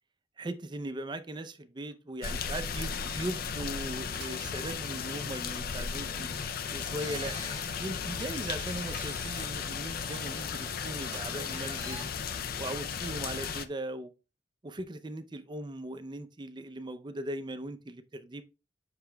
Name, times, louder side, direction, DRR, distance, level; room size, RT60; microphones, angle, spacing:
voice 1, 0.4-6.3 6.7-7.4 7.8-12.1 12.6-14.1 14.6-18.4, right 1 dB, 25° right, 0.5 m, -39 dB
sound 1, 1.9-2.0 2.4-2.5 4.1-5.2 5.7-5.8 7.1-7.5 7.9-8.0 8.2-8.3 11.1-11.7 12.3-12.4 13.3-13.4, right 8 dB, 85° right, 0.6 m, -53 dB
sound 2, 2.2-13.7, left 6 dB, 55° left, 0.4 m, -35 dB
sound 3, 7.0-9.5 9.9-12.3 12.7-13.5, left 1 dB, 25° left, 1.7 m, -47 dB
7.6 x 5.8 x 2.2 m
head